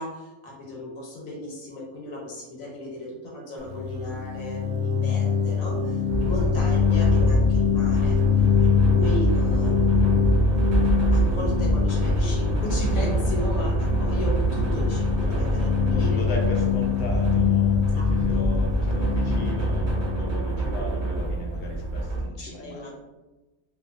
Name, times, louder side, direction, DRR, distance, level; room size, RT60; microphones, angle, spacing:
voice 1, 0.0-8.7 8.9-10.1 11.1-16.4 17.9-18.4 19.9-20.0 22.4-22.9, left 1 dB, 80° left, -3 dB, 1.2 m, -35 dB
sound 1, 3.6-21.2, left 8 dB, 85° right, 1.0 m, -24 dB
sound 2, 6.1-22.2, right 2 dB, 50° right, 0.6 m, -25 dB
voice 2, 15.9-22.9, left 1 dB, 65° left, -1 dB, 0.8 m, -36 dB
2.7 x 2.2 x 2.4 m, 1.1 s
omnidirectional pair, 1.4 m